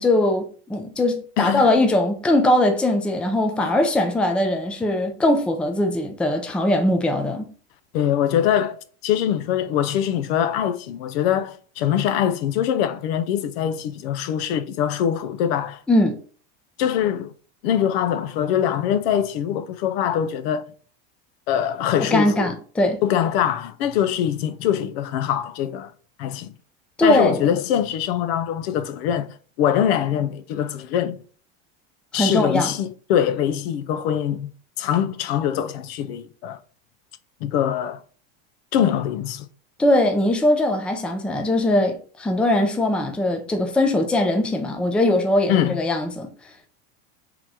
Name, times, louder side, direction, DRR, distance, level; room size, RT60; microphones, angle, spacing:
voice 1, 0.0-7.5 15.9-16.2 22.0-23.0 27.0-27.4 32.1-32.7 39.8-46.3, left 1 dB, 5° left, 0.4 m, -20 dB
voice 2, 1.4-1.7 3.6-3.8 7.9-15.8 16.8-17.3 17.6-20.7 21.5-22.5 23.0-25.9 26.2-26.5 27.0-31.2 32.1-34.5 34.8-36.6 37.4-38.0 38.7-39.5 45.5-45.8, left 9 dB, 75° left, 0.6 m, -23 dB
3.9 x 3.0 x 4.6 m
supercardioid pair, 145°, 31 cm